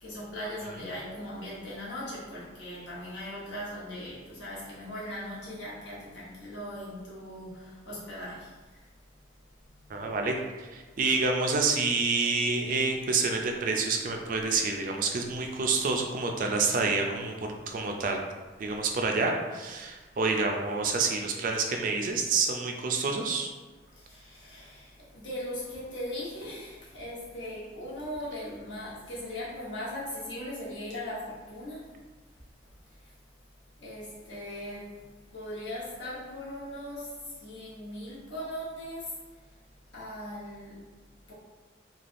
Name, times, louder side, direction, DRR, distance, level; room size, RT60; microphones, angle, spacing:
voice 1, 0.0-8.5 24.0-31.9 33.8-35.0 35.3-37.1 37.4-39.1 39.9-40.8 41.3-41.4, left 1 dB, 80° left, -7 dB, 1.1 m, -39 dB
voice 2, 9.9-17.4 17.7-18.2 18.6-23.5, right 4 dB, 45° right, 2 dB, 0.3 m, -28 dB
3.3 x 2.3 x 2.5 m, 1.3 s
head